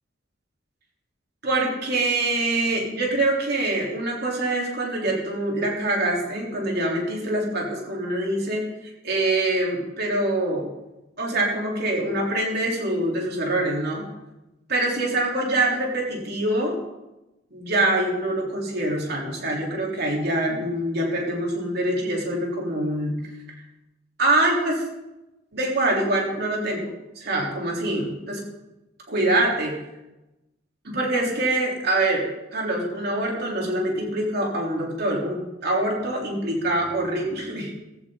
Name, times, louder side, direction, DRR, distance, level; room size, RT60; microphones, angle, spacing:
voice 1, 1.4-8.7 9.0-10.7 11.2-14.1 14.7-16.8 17.5-23.1 24.2-24.8 25.5-28.4 29.1-29.7 30.8-32.2 32.5-37.7, right 1 dB, 60° right, -2 dB, 3.8 m, -24 dB
16.0 x 14.5 x 4.0 m, 0.98 s
head